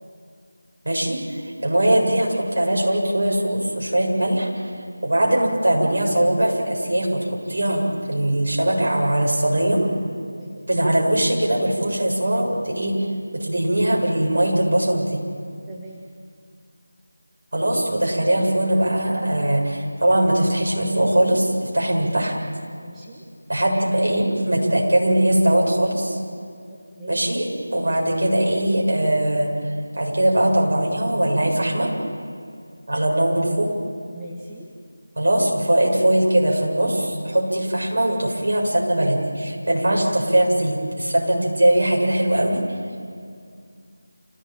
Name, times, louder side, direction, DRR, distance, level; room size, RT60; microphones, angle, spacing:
voice 1, 0.8-4.7 5.0-9.8 10.7-13.0 13.3-15.2 17.5-22.3 23.5-26.2 27.1-29.5 29.9-31.9 32.9-33.7 35.2-42.6, right 1 dB, 55° right, -2 dB, 7.6 m, -21 dB
voice 2, 15.7-16.0 22.8-23.2 27.0-27.2 34.1-34.7, right 1 dB, 10° right, -6 dB, 1.7 m, -41 dB
29.0 x 16.5 x 9.0 m, 2.2 s
figure-of-eight pair, 165°, 0 cm